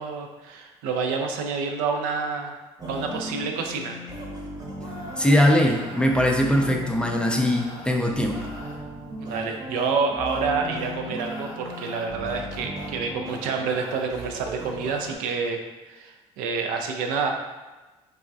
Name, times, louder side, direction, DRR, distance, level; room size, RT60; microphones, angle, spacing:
voice 1, 0.0-2.6 2.9-4.0 9.2-15.6 15.9-17.4, right 5 dB, 75° right, 3 dB, 0.4 m, -28 dB
sound 1, 2.8-15.2, equal, 25° right, 0.8 m, -36 dB
voice 2, 5.2-8.5, left 1 dB, 5° left, 1 dB, 0.4 m, -21 dB
3.3 x 2.2 x 2.5 m, 1.2 s
hypercardioid pair, 60°, 14 cm